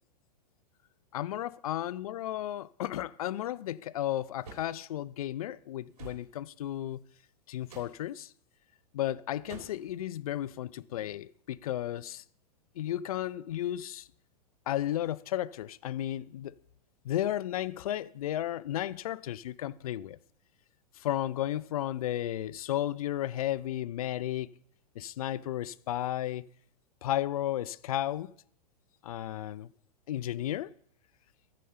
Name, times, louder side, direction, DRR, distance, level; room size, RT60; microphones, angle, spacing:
voice 1, 1.1-7.0 7.5-8.3 8.9-12.2 12.8-14.1 14.7-16.6 17.0-20.2 21.0-24.5 25.0-26.4 27.0-28.3 29.0-29.7 30.1-30.7, left 12 dB, 60° left, 0.5 m, -33 dB
sound 1, 4.4-4.7 6.0-6.3 7.6-8.0 9.5-9.9, right 4 dB, 60° right, 3.6 m, -47 dB
14.5 x 5.1 x 5.7 m
figure-of-eight pair, 100°, 21 cm